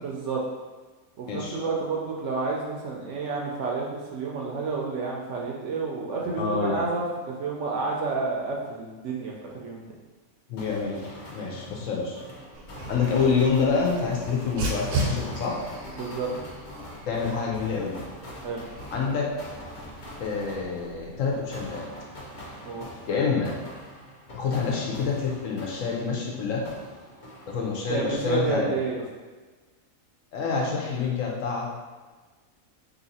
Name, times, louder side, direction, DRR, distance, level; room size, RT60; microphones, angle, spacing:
voice 1, 0.0-0.4 1.2-9.8 15.9-16.3 18.4-18.6 22.6-22.9 27.9-28.9, right 4 dB, 65° right, -2 dB, 0.8 m, -30 dB
voice 2, 1.3-1.6 6.4-6.7 10.5-11.0 11.3-12.2 12.9-15.6 17.0-18.0 18.9-19.3 20.2-21.8 23.1-23.5 24.3-26.6 27.5-28.8 30.3-31.7, left 5 dB, 70° left, -2 dB, 1.0 m, -27 dB
sound 1, 10.6-26.3 26.6-28.0, equal, 45° left, 0.7 m, -43 dB
Dog, 12.5-21.6, right 2 dB, 85° right, 1.2 m, -37 dB
2.9 x 2.7 x 4.0 m, 1.3 s
omnidirectional pair, 1.5 m